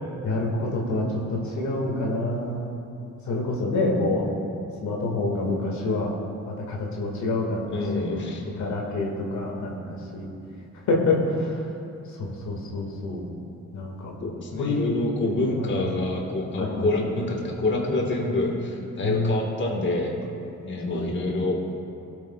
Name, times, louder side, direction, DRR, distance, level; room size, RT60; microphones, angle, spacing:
voice 1, 0.2-2.6 3.3-4.2 4.8-6.1 6.5-8.1 8.6-10.3 10.9-11.5 12.2-13.2 13.7-14.2 14.6-14.8 15.1-15.8 16.6-17.2 19.0-19.4 20.9-21.1, left 2 dB, 70° left, -1 dB, 1.8 m, -27 dB
voice 2, 7.7-8.5 14.2-20.1 20.6-21.6, left 2 dB, 40° left, -1 dB, 1.5 m, -27 dB
17.0 x 8.5 x 2.3 m, 2.9 s
cardioid pair, 90°, 30 cm